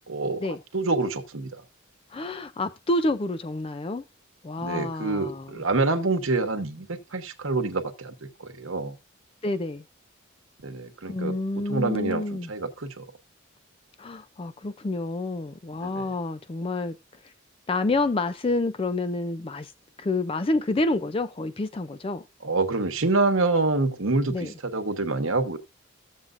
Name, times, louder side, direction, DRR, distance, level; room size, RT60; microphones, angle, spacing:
voice 1, 0.1-0.4 0.7-1.5 4.6-8.1 8.4-8.9 10.6-11.3 11.6-13.0 15.8-16.1 22.4-25.6, right 3 dB, 75° right, 1.1 m, -26 dB
voice 2, 2.1-4.0 4.4-5.5 9.4-9.8 11.1-12.5 14.0-17.0 17.7-19.7 20.0-22.2 24.3-24.5, left 2 dB, 25° left, 0.4 m, -28 dB
14.5 x 7.3 x 2.5 m
head